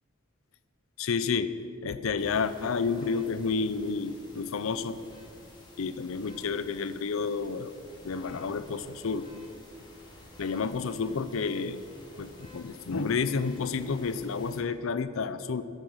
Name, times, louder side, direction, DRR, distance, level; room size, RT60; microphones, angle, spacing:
voice 1, 1.0-1.5 1.8-5.0 5.8-7.8 8.0-9.3 10.4-11.8 12.2-15.6, left 5 dB, 80° left, 14 dB, 0.5 m, -30 dB
sound 1, 2.2-14.6, left 1 dB, 20° left, 2.0 m, -52 dB
9.9 x 8.7 x 6.2 m, 2.9 s
head